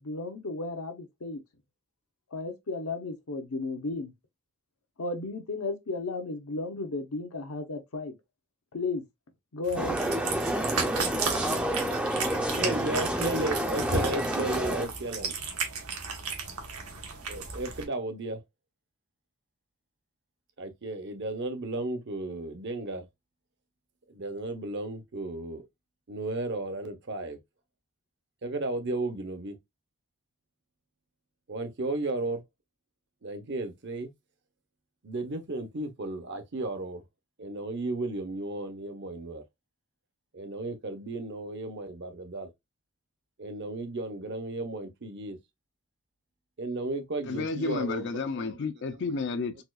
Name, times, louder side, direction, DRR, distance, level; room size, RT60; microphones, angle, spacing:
voice 1, 0.0-1.4 2.3-4.1 5.0-8.1 8.7-9.0 9.5-10.0, left 3 dB, 70° left, 0.8 m, -34 dB
Cat, 9.6-17.8, right 4 dB, 75° right, 1.0 m, -34 dB
sound 1, 9.8-14.9, right 1 dB, 5° right, 0.4 m, -29 dB
voice 2, 12.6-15.4 17.3-18.4 20.6-23.1 24.1-25.6 26.1-27.4 28.4-29.6 31.5-32.4 33.2-34.1 35.0-37.0 37.4-39.4 40.3-42.5 43.4-45.4 46.6-48.5, right 2 dB, 50° right, 0.7 m, -34 dB
voice 3, 47.2-49.6, left 4 dB, 50° left, 0.4 m, -31 dB
4.2 x 2.3 x 2.3 m
head